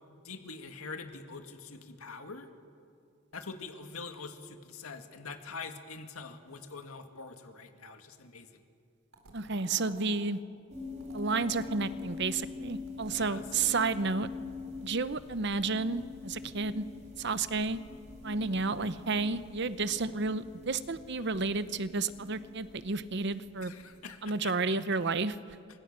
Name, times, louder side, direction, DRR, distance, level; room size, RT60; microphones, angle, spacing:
voice 1, 0.2-2.5 3.3-8.6 13.1-13.4 23.6-24.5, left 4 dB, 90° left, 6 dB, 2.1 m, -44 dB
sound 1, 9.1-10.3 11.0-12.2 12.7-14.3, right 2 dB, 75° right, 3.6 m, -52 dB
voice 2, 9.3-10.4 11.1-14.3 14.8-16.8 17.2-17.8 18.2-23.7 24.2-25.4, right 4 dB, 55° right, 13 dB, 0.9 m, -31 dB
sound 2, 10.7-24.1, left 4 dB, 35° right, 4.6 m, -45 dB
29.5 x 25.5 x 6.8 m, 2.4 s
head